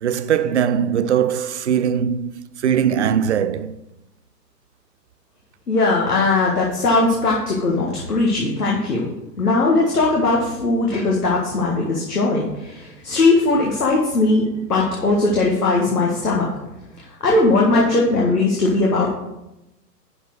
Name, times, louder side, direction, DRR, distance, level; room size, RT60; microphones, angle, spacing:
voice 1, 0.0-3.8, right 8 dB, 45° right, 0.5 m, -20 dB
voice 2, 5.7-9.1 9.4-14.4 14.7-16.5 17.2-19.1, left 3 dB, 65° left, 1.8 m, -19 dB
11.0 x 4.4 x 4.7 m
figure-of-eight pair, 115°, 49 cm